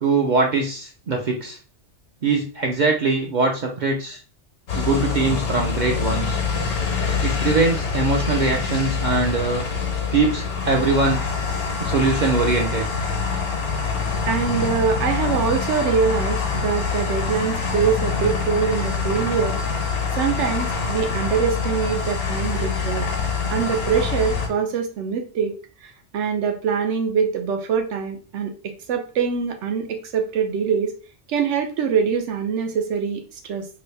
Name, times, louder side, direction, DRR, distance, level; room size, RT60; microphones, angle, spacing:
voice 1, 0.0-1.6 2.2-4.2 4.7-6.4 7.2-9.6 10.1-11.2 11.8-12.8, right 3 dB, 55° right, 0 dB, 0.5 m, -22 dB
sound 1, 4.7-24.5, left 5 dB, 80° left, 1.1 m, -25 dB
voice 2, 14.2-19.6 20.1-23.1 23.5-25.5 25.8-30.9 31.3-33.7, right 6 dB, 90° right, 5 dB, 1.0 m, -24 dB
2.9 x 2.6 x 3.2 m, 0.37 s
omnidirectional pair, 1.2 m